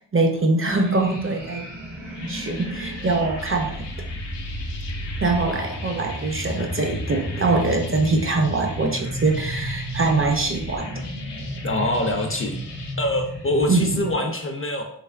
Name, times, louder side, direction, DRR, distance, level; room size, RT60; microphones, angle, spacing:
voice 1, 0.1-1.7 2.3-3.9 5.2-11.0 13.7-14.0, right 3 dB, 35° right, 3 dB, 0.4 m, -23 dB
sound 1, 0.6-14.1, equal, 75° right, 1.3 m, -33 dB
sound 2, 1.4-10.8, right 2 dB, 55° right, 0.7 m, -40 dB
sound 3, 1.9-12.9, left 4 dB, 80° left, 0.6 m, -41 dB
voice 2, 11.6-12.6 13.0-14.8, left 1 dB, 35° left, 3 dB, 0.4 m, -24 dB
3.3 x 2.9 x 2.3 m, 0.69 s
wide cardioid pair, 65°, 41 cm